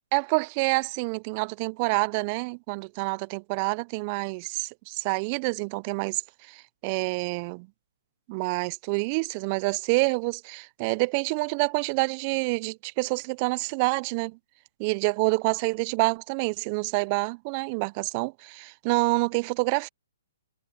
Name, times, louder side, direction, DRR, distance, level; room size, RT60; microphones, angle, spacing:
voice 1, 0.1-6.2 6.5-7.7 8.3-14.4 14.8-19.9, right 30 dB, 35° right, 0.3 m, -27 dB
hypercardioid pair, 140°, 0 cm